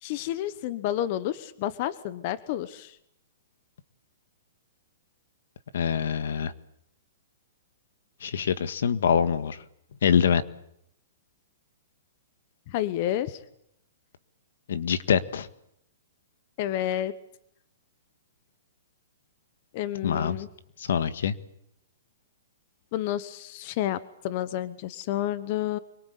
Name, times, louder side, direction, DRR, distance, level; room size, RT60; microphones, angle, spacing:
voice 1, 0.0-3.0 12.7-13.4 16.6-17.1 19.7-20.5 22.9-25.8, left 12 dB, 35° left, 15 dB, 1.1 m, -30 dB
voice 2, 5.7-6.5 8.2-9.6 10.0-10.4 14.7-15.5 20.0-20.4 20.8-21.3, left 7 dB, 70° left, 13 dB, 1.7 m, -24 dB
25.0 x 23.0 x 8.5 m, 0.76 s
hypercardioid pair, 165°, 0 cm